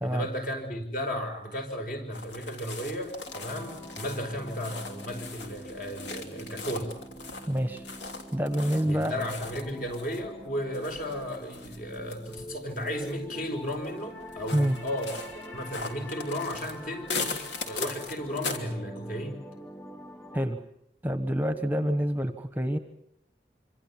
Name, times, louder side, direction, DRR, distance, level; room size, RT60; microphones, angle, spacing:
voice 1, 0.0-6.9 8.8-19.4, equal, 50° left, 4 dB, 5.2 m, -34 dB
sound 1, 2.1-18.6, left 4 dB, 80° left, 3.1 m, -40 dB
sound 2, 3.2-20.4, equal, 15° left, 2.5 m, -45 dB
voice 2, 7.5-7.8 8.3-9.1 14.5-14.8 20.3-20.6 21.0-22.8, equal, 10° right, 8 dB, 1.2 m, -27 dB
26.5 x 26.0 x 7.3 m, 0.72 s
head